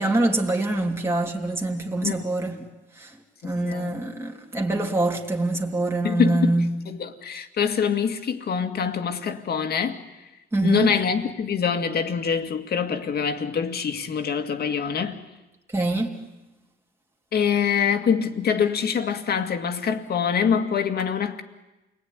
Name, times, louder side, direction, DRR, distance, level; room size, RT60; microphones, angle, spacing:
voice 1, 0.0-2.6 3.0-3.2 3.4-6.7 10.5-10.9 15.7-16.1, right 2 dB, 10° right, 3.1 m, -24 dB
voice 2, 3.4-4.0 6.0-10.0 10.6-15.2 17.3-21.4, left 7 dB, 55° left, 2.2 m, -25 dB
29.0 x 20.0 x 9.9 m
cardioid pair, 105°, 20 cm